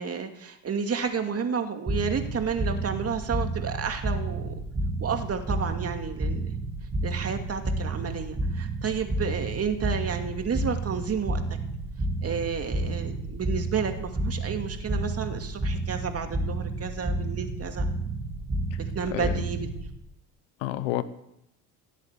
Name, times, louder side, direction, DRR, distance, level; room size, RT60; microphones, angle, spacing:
voice 1, 0.0-4.6 5.0-6.5 7.0-11.4 12.2-17.9 18.8-19.7, right 6 dB, 40° right, 6 dB, 2.4 m, -31 dB
sound 1, 1.9-19.9, right 2 dB, 15° right, 2.6 m, -31 dB
voice 2, 19.1-19.4 20.6-21.0, left 15 dB, 85° left, 14 dB, 1.1 m, -30 dB
16.5 x 8.2 x 8.3 m, 0.82 s
supercardioid pair, 85°, 38 cm